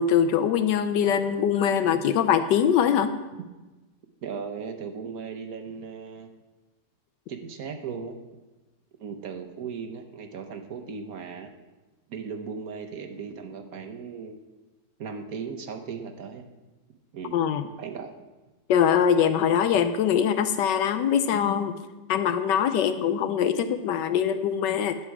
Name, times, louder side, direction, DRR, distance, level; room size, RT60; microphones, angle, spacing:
voice 1, 0.0-3.1 17.3-17.6 18.7-21.7 22.1-25.0, left 8 dB, 75° left, 10 dB, 1.2 m, -23 dB
voice 2, 4.2-6.3 7.3-8.1 9.0-11.5 12.1-14.4 15.0-16.4 17.1-17.3 17.8-18.1, right 6 dB, 60° right, 5 dB, 1.2 m, -37 dB
11.0 x 7.6 x 4.7 m, 1.1 s
omnidirectional pair, 2.0 m